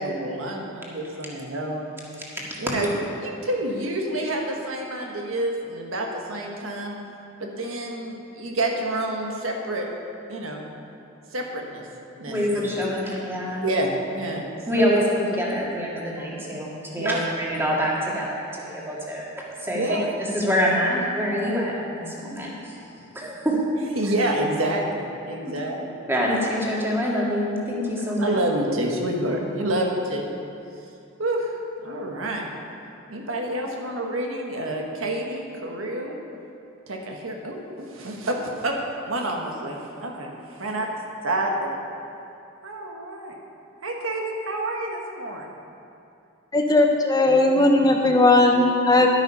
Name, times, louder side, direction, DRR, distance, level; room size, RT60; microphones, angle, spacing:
voice 1, 0.0-1.9 2.6-6.9 7.4-9.9 10.3-10.7 11.3-11.9 12.2-12.7 13.6-14.5 14.7-14.9 17.0-17.2 19.7-20.1 24.0-26.1 28.2-30.2 31.2-32.4 33.1-36.2 36.9-38.8 39.0-40.3 40.6-40.9 41.2-41.8 42.6-43.3 43.8-45.5, right 1 dB, 85° right, 1 dB, 1.4 m, -28 dB
voice 2, 12.3-13.6 14.7-19.2 19.6-20.0 20.3-22.8 23.1-23.6 26.1-28.4, equal, 10° right, -4 dB, 1.9 m, -25 dB
voice 3, 46.5-49.1, left 2 dB, 20° left, 2 dB, 0.7 m, -17 dB
11.5 x 8.8 x 5.6 m, 2.6 s
head